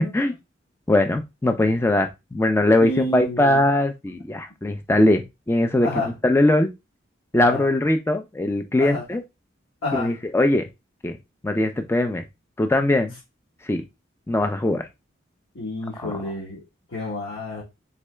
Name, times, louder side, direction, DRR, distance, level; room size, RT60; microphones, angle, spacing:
voice 1, 0.9-6.7 7.3-9.2 9.9-10.6 11.0-11.2 11.4-12.2 12.6-13.1 13.6-13.8 14.3-14.9 16.0-16.2, left 1 dB, 10° left, 0.3 m, -21 dB
voice 2, 2.8-3.6 5.8-6.1 7.4-7.6 8.8-9.0 9.8-10.1 15.5-16.6 16.9-17.6, left 2 dB, 85° left, 1.4 m, -29 dB
3.7 x 3.2 x 3.2 m
head